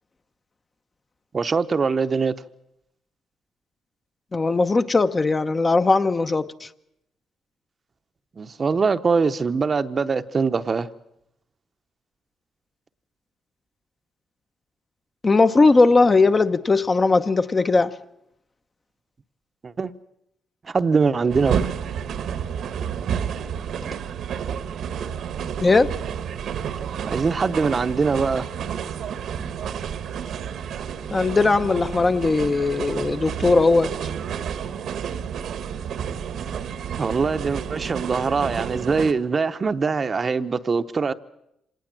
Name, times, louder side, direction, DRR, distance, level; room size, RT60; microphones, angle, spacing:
voice 1, 1.3-2.3 8.4-10.9 19.6-19.9 20.7-21.6 27.0-28.5 37.0-41.1, right 5 dB, 35° right, 0.8 m, -22 dB
voice 2, 4.3-6.7 15.2-18.0 25.6-25.9 31.1-33.9, left 3 dB, 30° left, 0.8 m, -19 dB
sound 1, 21.3-39.1, right 8 dB, 70° right, 1.2 m, -30 dB
26.0 x 18.5 x 7.5 m
cardioid pair, 90°, 0 cm